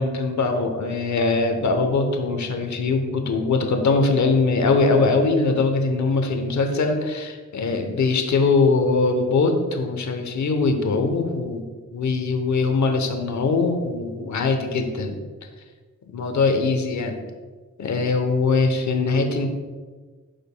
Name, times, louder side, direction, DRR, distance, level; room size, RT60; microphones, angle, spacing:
voice 1, 0.0-11.7 11.9-15.2 16.1-17.2 17.8-19.5, left 3 dB, 70° left, 5 dB, 0.9 m, -22 dB
12.5 x 5.2 x 2.2 m, 1.4 s
cardioid pair, 90°, 30 cm